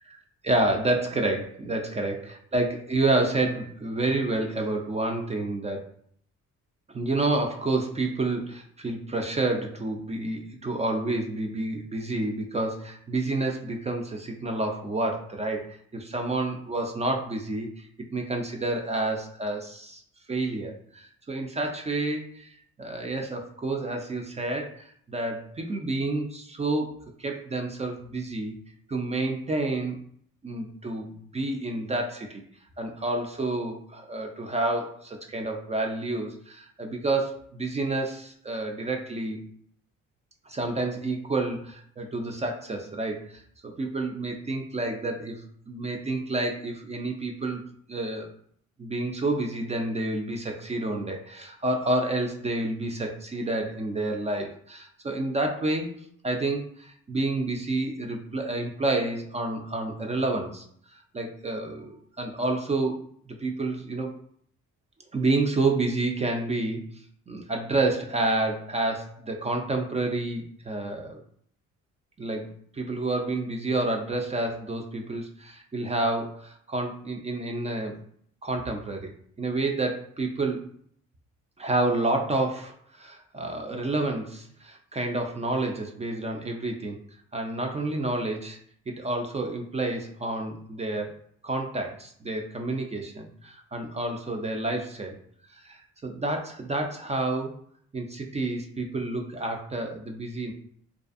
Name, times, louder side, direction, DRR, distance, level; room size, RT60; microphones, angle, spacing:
voice 1, 0.4-2.2 2.5-5.9 6.9-20.0 20.3-22.5 22.8-28.5 28.9-30.0 30.4-32.4 32.8-39.4 40.5-47.6 47.9-48.3 48.8-55.9 56.2-60.6 60.9-63.0 63.3-64.2 65.1-66.8 67.3-71.2 72.2-78.0 78.4-79.1 79.4-80.6 81.6-87.0 87.3-88.6 88.9-91.2 91.4-95.1 95.6-97.5 97.9-100.5, right 2 dB, 20° right, 2 dB, 0.4 m, -29 dB
2.5 x 2.4 x 2.4 m, 0.63 s
cardioid pair, 90°, 30 cm